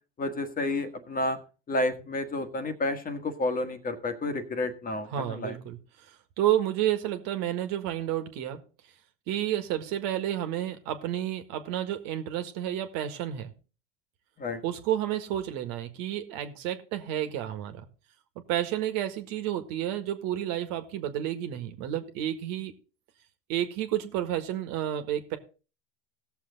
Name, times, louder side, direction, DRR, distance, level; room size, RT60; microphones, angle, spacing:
voice 1, 0.2-1.4 1.7-5.6 14.4-14.6, left 2 dB, 30° left, 8 dB, 1.5 m, -30 dB
voice 2, 5.1-5.8 6.4-8.6 9.3-13.5 14.6-17.8 18.5-22.7 23.5-25.4, right 12 dB, 60° right, 8 dB, 1.6 m, -30 dB
16.5 x 7.0 x 4.0 m, 0.34 s
hypercardioid pair, 95°, 30 cm